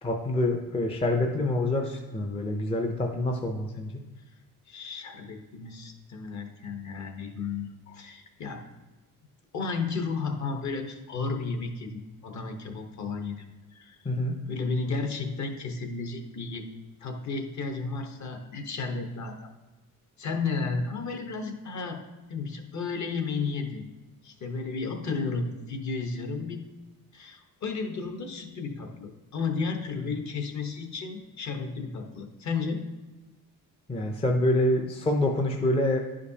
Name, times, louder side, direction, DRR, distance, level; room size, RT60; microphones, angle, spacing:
voice 1, 0.0-4.0 14.0-14.3 33.9-36.0, left 1 dB, 15° left, 2 dB, 0.5 m, -26 dB
voice 2, 4.7-8.6 9.5-13.4 13.7-14.0 14.5-16.7 17.0-19.5 20.2-22.0 22.3-23.9 24.2-26.6 27.1-32.9, left 4 dB, 50° left, 4 dB, 1.1 m, -33 dB
10.5 x 5.1 x 2.8 m, 1.2 s
cardioid pair, 140°, 37 cm